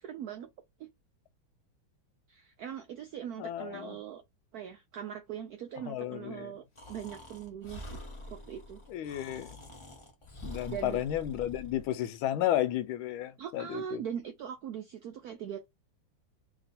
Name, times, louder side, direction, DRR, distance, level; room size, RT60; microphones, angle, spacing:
voice 1, 0.0-0.5 0.8-0.9 2.3-4.2 4.5-6.6 6.9-8.8 10.7-11.0 13.4-15.7, right 9 dB, 80° right, 0.8 m, -41 dB
voice 2, 3.4-4.0 5.9-6.5 8.9-9.6 10.4-14.0, left 12 dB, 85° left, 1.4 m, -33 dB
Breathing, 6.7-11.9, left 1 dB, 40° left, 0.4 m, -46 dB
3.0 x 3.0 x 4.1 m
omnidirectional pair, 2.2 m